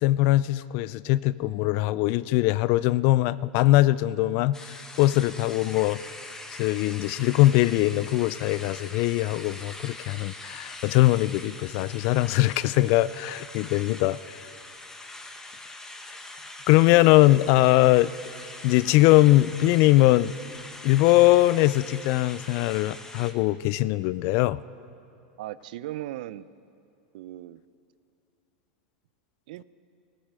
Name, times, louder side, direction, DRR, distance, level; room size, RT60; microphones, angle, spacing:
voice 1, 0.0-6.0 6.6-14.4 16.7-18.1 18.6-20.3 20.8-24.6, left 17 dB, 50° left, 19 dB, 0.3 m, -21 dB
sound 1, 4.5-23.3, left 2 dB, 10° left, 1.3 m, -43 dB
voice 2, 25.4-26.5 27.1-27.6 29.5-29.6, right 14 dB, 65° right, 17 dB, 0.5 m, -37 dB
15.5 x 13.0 x 6.7 m, 2.6 s
hypercardioid pair, 105°, 5 cm